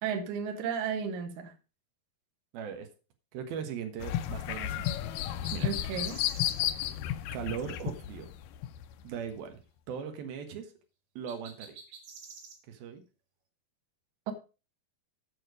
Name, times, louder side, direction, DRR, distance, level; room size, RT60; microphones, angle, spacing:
voice 1, 0.0-1.5 5.6-6.2 14.3-14.4, right 7 dB, 65° right, 7 dB, 2.3 m, -33 dB
voice 2, 2.5-2.9 3.3-5.1 5.5-5.7 7.3-8.3 9.0-9.6 9.9-10.7 11.2-11.8 12.7-13.0, right 7 dB, 85° right, 6 dB, 3.2 m, -39 dB
sound 1, 4.0-8.9 9.4-9.5, left 12 dB, 80° left, 2.0 m, -33 dB
sound 2, 5.2-6.6 11.3-12.6, right 5 dB, 45° right, 2.3 m, -49 dB
8.7 x 6.8 x 4.8 m, 0.31 s
omnidirectional pair, 4.2 m